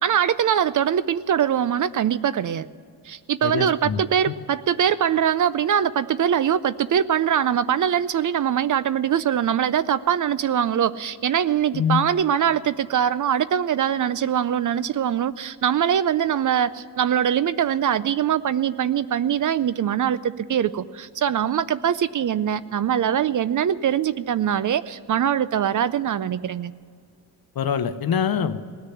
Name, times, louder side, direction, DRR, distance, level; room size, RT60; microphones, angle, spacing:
voice 1, 0.0-2.7 3.1-26.7, right 9 dB, 50° right, 16 dB, 0.4 m, -22 dB
voice 2, 3.4-4.3 11.7-12.0 27.6-28.6, left 7 dB, 60° left, 11 dB, 0.8 m, -24 dB
18.0 x 6.6 x 9.8 m, 2.1 s
wide cardioid pair, 120°, 41 cm